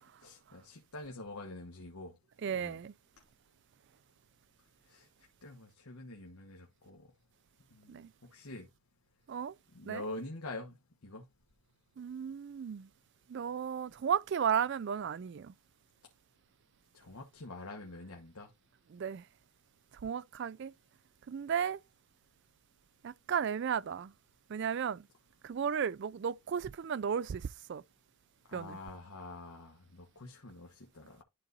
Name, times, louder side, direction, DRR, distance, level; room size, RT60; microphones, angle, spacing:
voice 1, 0.2-2.1 2.5-2.8 4.9-5.1 5.4-7.1 7.7-8.7 9.7-10.8 11.0-11.2 16.9-18.5 28.5-31.2, left 2 dB, 75° left, 1.2 m, -46 dB
voice 2, 2.4-2.9 7.9-8.1 9.3-9.6 9.9-10.0 12.0-12.9 13.3-15.5 18.9-19.3 20.0-20.7 21.3-21.8 23.0-24.1 24.5-25.1 25.4-27.8 28.5-28.8, right 7 dB, 50° right, 0.3 m, -34 dB
11.5 x 4.0 x 2.5 m
head